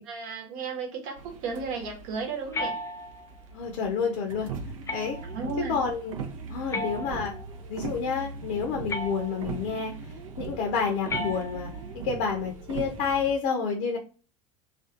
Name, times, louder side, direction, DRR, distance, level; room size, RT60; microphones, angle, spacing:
voice 1, 0.0-2.8 5.3-5.8, right 4 dB, 55° right, 2 dB, 0.9 m, -34 dB
sound 1, 1.2-13.3, right 5 dB, 75° right, 0.5 m, -40 dB
sound 2, 2.5-3.4 4.9-5.4 6.7-7.6 8.9-9.6 11.1-12.0, left 2 dB, 15° left, 0.4 m, -35 dB
voice 2, 3.5-4.5 4.9-5.2 5.7-6.2 6.5-7.4 7.7-9.9 10.4-14.0, left 6 dB, 65° left, 2 dB, 0.6 m, -29 dB
2.5 x 2.2 x 2.5 m, 0.38 s
hypercardioid pair, 75°, 17 cm